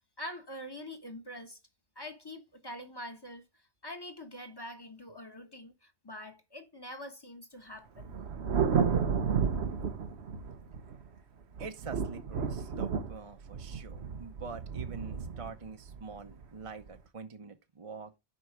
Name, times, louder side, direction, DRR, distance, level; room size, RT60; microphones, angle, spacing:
voice 1, 0.2-1.6 1.9-8.2, left 1 dB, 25° left, 1.2 m, -45 dB
Thunder, 8.0-11.1 11.6-16.9, right 6 dB, 85° right, 1.1 m, -32 dB
voice 2, 11.0-11.3 11.6-18.1, right 4 dB, 35° right, 0.7 m, -45 dB
8.0 x 5.4 x 4.7 m
omnidirectional pair, 1.1 m